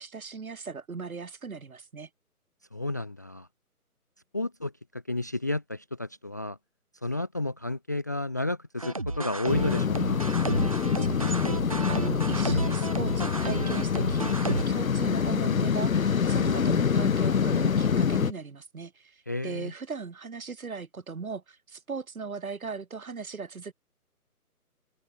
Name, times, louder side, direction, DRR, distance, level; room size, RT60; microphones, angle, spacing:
voice 1, 0.0-2.1 11.0-23.7, right 5 dB, 65° right, 5.1 m, -38 dB
voice 2, 2.7-3.5 4.3-6.6 7.0-10.2 19.3-19.7, left 2 dB, 10° left, 0.7 m, -32 dB
sound 1, 8.8-14.6, right 2 dB, 25° right, 0.6 m, -32 dB
sound 2, 9.5-18.3, left 6 dB, 60° left, 1.2 m, -26 dB
open air
figure-of-eight pair, 160°, 45 cm